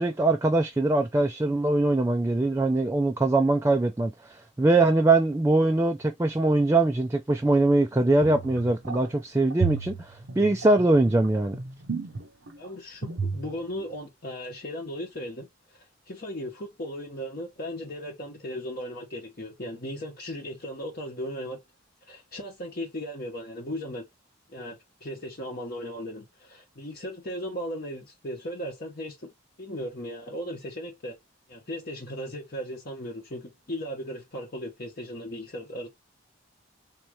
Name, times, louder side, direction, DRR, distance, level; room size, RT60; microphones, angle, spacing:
voice 1, 0.0-11.6, right 2 dB, 15° right, 0.3 m, -22 dB
sound 1, 8.2-9.1 9.5-12.6 13.0-13.5 13.8-13.9, right 5 dB, 65° right, 0.7 m, -32 dB
voice 2, 12.6-21.6 22.1-24.0 24.5-29.3 29.6-31.2 31.5-35.9, equal, 45° left, 0.9 m, -37 dB
3.6 x 2.9 x 3.1 m
head